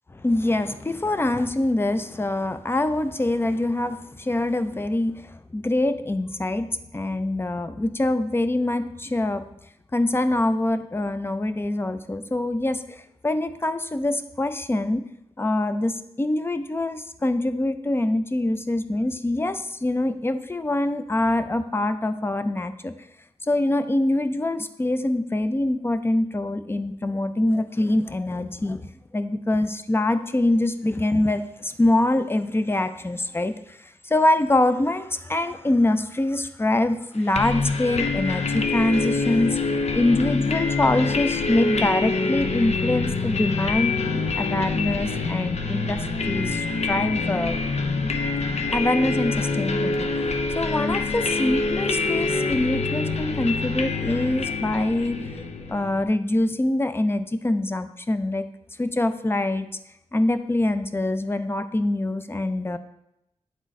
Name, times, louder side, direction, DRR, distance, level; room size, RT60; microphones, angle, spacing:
voice 1, 0.1-9.4 9.9-15.1 15.4-22.9 23.5-28.8 29.1-39.6 39.9-44.0 44.4-47.6 48.7-50.1 50.5-58.5 58.8-59.7 60.1-62.8, left 1 dB, 20° left, 10 dB, 0.5 m, -24 dB
sound 1, 37.3-56.0, left 3 dB, 65° left, 0.7 m, -26 dB
9.1 x 3.8 x 4.1 m, 0.83 s
wide cardioid pair, 75°, 12 cm